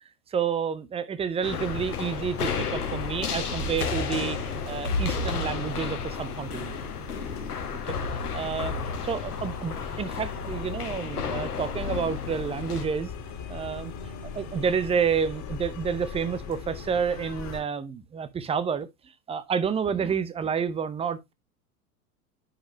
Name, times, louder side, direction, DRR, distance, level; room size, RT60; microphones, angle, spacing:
voice 1, 0.3-6.7 7.9-8.0 8.3-8.8 9.0-13.1 13.5-13.9 14.3-18.9 19.3-21.3, right 6 dB, 15° right, 0.7 m, -29 dB
sound 1, 1.4-12.8, left 5 dB, 80° left, 1.4 m, -32 dB
sound 2, 1.4-17.6, left 6 dB, 35° left, 2.1 m, -39 dB
9.9 x 5.4 x 3.0 m
figure-of-eight pair, 85°, 45 cm